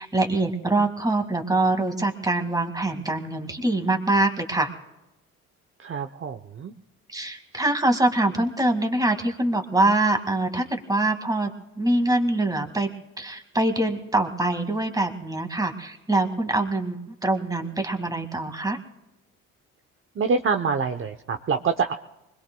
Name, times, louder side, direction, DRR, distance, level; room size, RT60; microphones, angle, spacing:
voice 1, 0.0-4.7 7.1-12.9 13.2-18.8, right 2 dB, 10° right, 5 dB, 2.1 m, -24 dB
voice 2, 5.8-6.7 20.1-21.9, right 5 dB, 45° right, 5 dB, 0.9 m, -26 dB
25.0 x 21.0 x 2.3 m, 0.97 s
cardioid pair, 90°, 30 cm